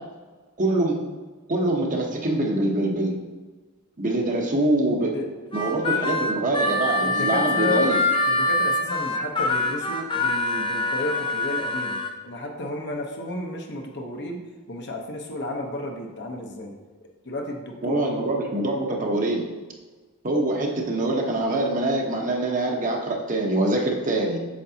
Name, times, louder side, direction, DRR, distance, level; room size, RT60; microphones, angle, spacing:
voice 1, 0.6-1.0 1.5-3.2 4.0-5.1 5.5-8.0 17.8-19.4 20.2-24.4, right 2 dB, 35° right, 0 dB, 1.0 m, -24 dB
voice 2, 5.0-5.3 7.0-7.9 8.3-12.0 12.2-14.4 14.7-16.7 17.0-18.2, left 1 dB, 50° left, 1 dB, 1.0 m, -32 dB
Harmonica, 5.5-12.1, left 2 dB, 20° left, 0.5 m, -24 dB
8.4 x 6.7 x 2.9 m, 1.3 s
head